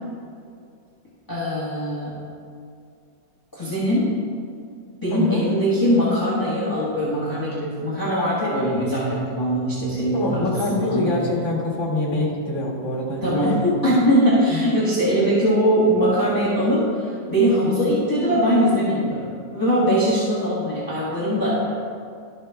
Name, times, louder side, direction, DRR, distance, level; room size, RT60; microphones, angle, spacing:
voice 1, 1.3-2.2 3.5-4.1 5.0-11.1 13.2-21.7, equal, 10° left, -10 dB, 1.6 m, -21 dB
voice 2, 5.1-5.4 10.1-14.0 14.5-14.6 15.1-15.3 17.7-18.0, left 2 dB, 45° left, -5 dB, 1.8 m, -25 dB
13.0 x 4.9 x 3.4 m, 2.4 s
omnidirectional pair, 2.0 m